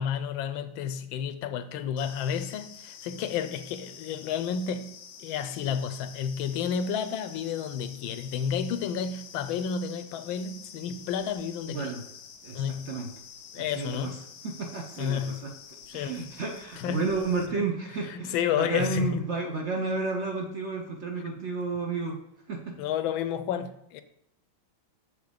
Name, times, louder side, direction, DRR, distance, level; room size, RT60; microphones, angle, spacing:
voice 1, 0.0-4.9 5.2-11.9 12.5-12.9 13.5-14.2 15.0-15.4 15.9-16.2 16.8-17.1 17.5-17.7 18.1-19.2 22.8-24.0, left 8 dB, 85° left, 1.4 m, -31 dB
sound 1, 2.0-17.5, left 7 dB, 60° left, 1.0 m, -48 dB
voice 2, 11.6-12.0 12.4-13.1 13.7-14.2 14.4-15.3 15.9-22.2 22.5-22.8, right 3 dB, 55° right, 0.7 m, -31 dB
6.9 x 4.8 x 5.0 m
omnidirectional pair, 2.1 m